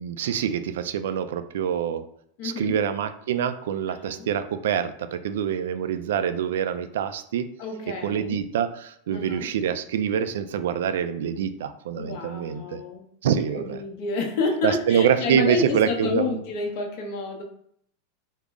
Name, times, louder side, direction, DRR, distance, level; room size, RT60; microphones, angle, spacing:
voice 1, 0.0-2.0 2.4-7.5 8.0-12.8 13.2-13.8 14.6-16.4, right 8 dB, 85° right, 11 dB, 0.3 m, -25 dB
voice 2, 2.4-2.8 4.1-4.3 7.6-8.4 9.1-9.5 12.0-17.4, left 3 dB, 50° left, 3 dB, 0.7 m, -30 dB
3.7 x 2.0 x 3.5 m, 0.68 s
supercardioid pair, 160°, 0 cm